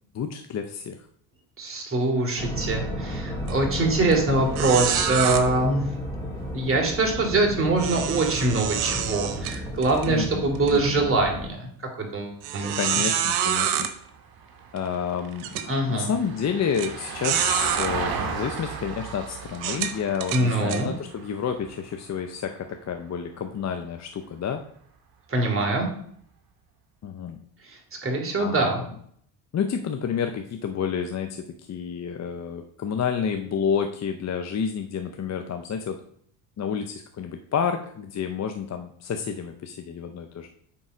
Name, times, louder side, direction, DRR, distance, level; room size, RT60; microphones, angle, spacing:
voice 1, 0.1-1.1 10.1-11.1 12.7-13.9 14.7-15.6 15.9-24.6 27.0-27.4 28.4-28.9 29.5-36.0 36.6-40.5, left 7 dB, 35° left, 6 dB, 0.7 m, -30 dB
voice 2, 1.6-5.8 6.5-11.7 12.0-12.7 15.7-16.1 20.3-20.9 25.3-25.9 27.7-28.8, right 2 dB, 25° right, 0 dB, 2.8 m, -24 dB
sound 1, 2.4-11.5, equal, 5° left, 2.6 m, -33 dB
sound 2, 3.5-3.7 4.1-4.2 4.5-5.4 7.8-10.1 10.5-10.7 11.3-11.4 12.4-13.9 14.8-14.9 15.4-15.7 16.7-16.9 17.2-17.9 18.6-18.7 19.5-20.8, right 10 dB, 80° right, 1.0 m, -27 dB
Vehicle, 12.7-23.0 25.3-25.4, right 5 dB, 45° right, 1.5 m, -37 dB
8.4 x 3.9 x 5.0 m, 0.63 s
supercardioid pair, 80°, 49 cm